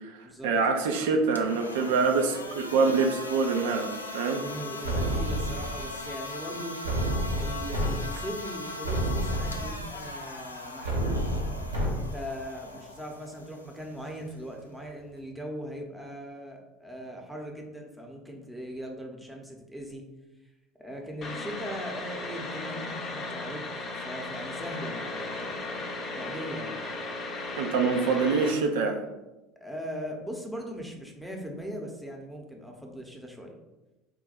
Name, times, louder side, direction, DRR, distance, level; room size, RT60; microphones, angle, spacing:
voice 1, 0.0-4.4 27.6-29.0, right 4 dB, 65° right, 4 dB, 0.4 m, -25 dB
sound 1, 1.2-15.3, left 2 dB, 85° left, 0.3 m, -40 dB
voice 2, 4.3-6.8 7.2-11.4 11.9-20.0 20.8-25.8 26.1-26.8 29.6-33.6, equal, ahead, 0 dB, 0.8 m, -40 dB
sound 2, 4.8-5.9 6.8-7.9 8.3-8.4 8.8-9.9 10.8-11.9, right 1 dB, 80° right, 1.0 m, -29 dB
sound 3, 21.2-28.5, left 2 dB, 35° left, 0.6 m, -36 dB
3.8 x 2.2 x 4.3 m, 1.0 s
figure-of-eight pair, 70°, 0 cm